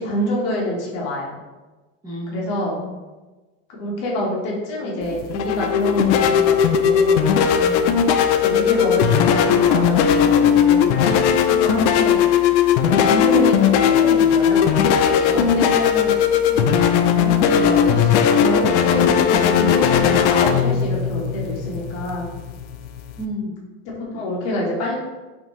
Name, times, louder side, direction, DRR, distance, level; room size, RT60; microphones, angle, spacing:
voice 1, 0.0-1.3 2.3-2.8 3.7-7.2 8.4-12.2 12.9-16.1 16.4-22.3 24.1-24.9, left 1 dB, 45° left, -4 dB, 1.1 m, -26 dB
voice 2, 2.0-2.9 7.4-8.1 15.2-15.5 23.2-23.6, equal, 10° right, -8 dB, 0.6 m, -32 dB
sound 1, 5.0-23.2, left 8 dB, 70° left, 0.5 m, -17 dB
5.1 x 2.7 x 3.0 m, 1.2 s
supercardioid pair, 170°, 36 cm